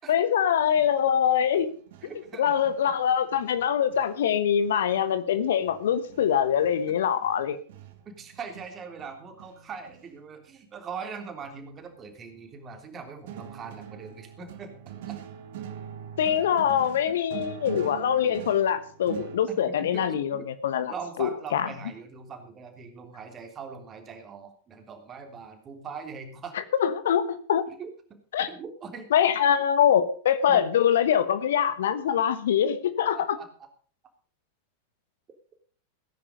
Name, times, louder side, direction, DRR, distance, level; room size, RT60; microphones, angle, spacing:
voice 1, 0.1-1.7 2.4-7.6 16.2-20.9 21.2-21.7 26.7-27.6 28.3-28.5 29.1-33.4, left 9 dB, 60° left, 12 dB, 1.2 m, -24 dB
sound 1, 0.7-4.3 4.6-10.1 11.4-12.4 13.3-19.4, right 9 dB, 55° right, 1.8 m, -44 dB
voice 2, 2.0-2.9 6.9-7.0 8.2-14.7 15.1-15.2 17.1-17.9 18.2-18.4 19.5-20.5 20.8-26.6 27.7-27.9 28.5-29.1 30.5-30.6 33.1-33.5, right 5 dB, 25° right, 4 dB, 3.3 m, -41 dB
17.5 x 10.0 x 5.2 m, 0.44 s
figure-of-eight pair, 90°, 0 cm